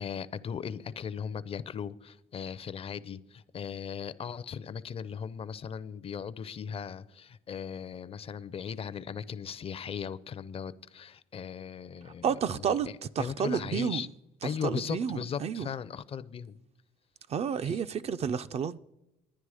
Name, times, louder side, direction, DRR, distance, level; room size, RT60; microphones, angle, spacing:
voice 1, 0.0-12.8 13.2-14.1 14.4-16.6 17.6-17.8, left 7 dB, 35° left, 0.5 m, -38 dB
voice 2, 12.0-14.1 14.4-15.7 17.3-18.8, right 7 dB, 40° right, 0.4 m, -31 dB
11.5 x 9.9 x 4.8 m
cardioid pair, 110°, 17 cm